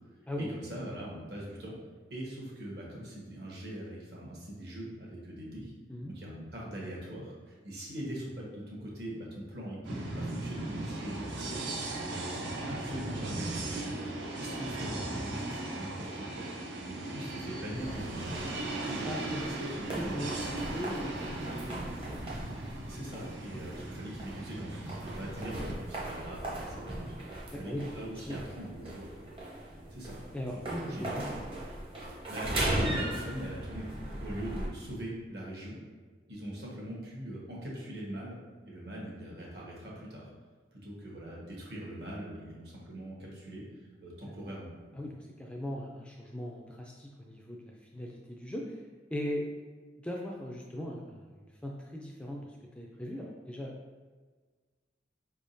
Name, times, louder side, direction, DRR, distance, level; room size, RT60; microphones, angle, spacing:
voice 1, 0.5-1.7 2.1-5.7 6.1-11.6 12.0-16.5 16.8-20.5 22.9-29.3 29.9-30.2 30.5-31.5 32.3-35.7 36.3-38.4 38.6-40.3 40.7-43.6 44.0-44.7, right 1 dB, 60° right, -4 dB, 1.2 m, -42 dB
sound 1, 9.8-25.7, right 2 dB, 85° right, 0.6 m, -38 dB
sound 2, 17.7-34.7, right 1 dB, 30° right, 0.7 m, -38 dB
voice 2, 19.9-20.4 20.7-22.1 23.7-23.8 27.5-28.4 30.3-31.4 44.2-44.3 44.9-48.8 49.1-49.5 50.0-51.3 51.6-53.7, equal, 5° left, -1 dB, 0.3 m, -39 dB
5.0 x 3.5 x 2.6 m, 1.4 s
head